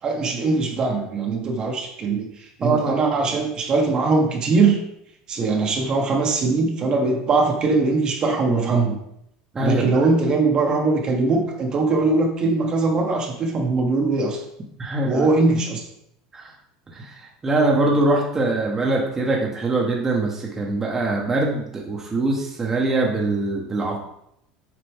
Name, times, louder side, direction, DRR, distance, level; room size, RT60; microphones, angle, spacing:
voice 1, 0.0-4.8 5.3-9.0 9.6-14.4 15.0-15.8, right 3 dB, 35° right, 1 dB, 1.4 m, -21 dB
voice 2, 2.6-3.0 9.5-10.1 14.8-15.3 16.3-16.5 16.9-17.1 17.4-24.0, right 2 dB, 20° right, -2 dB, 1.3 m, -23 dB
7.9 x 5.0 x 3.6 m, 0.77 s
supercardioid pair, 125°, 2 cm